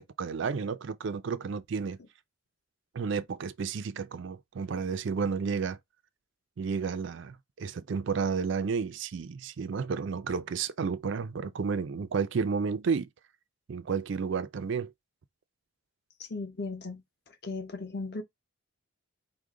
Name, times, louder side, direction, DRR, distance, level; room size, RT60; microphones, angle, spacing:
voice 1, 0.0-2.0 2.9-5.8 6.6-13.1 13.7-14.9, right 5 dB, 55° right, 0.4 m, -31 dB
voice 2, 16.2-18.2, left 3 dB, 50° left, 0.9 m, -37 dB
4.9 x 2.1 x 3.7 m
head